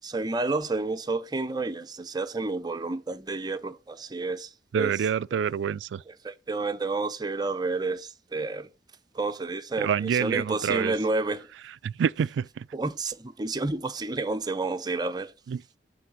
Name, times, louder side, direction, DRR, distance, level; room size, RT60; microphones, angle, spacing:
voice 1, 0.0-4.5 4.8-4.9 6.1-8.7 9.1-11.5 12.7-15.3, right 3 dB, 25° right, 0.6 m, -30 dB
voice 2, 4.7-6.0 9.8-10.9 11.8-12.7 15.5-15.8, right 7 dB, 80° right, 0.3 m, -27 dB
7.8 x 3.3 x 6.1 m
head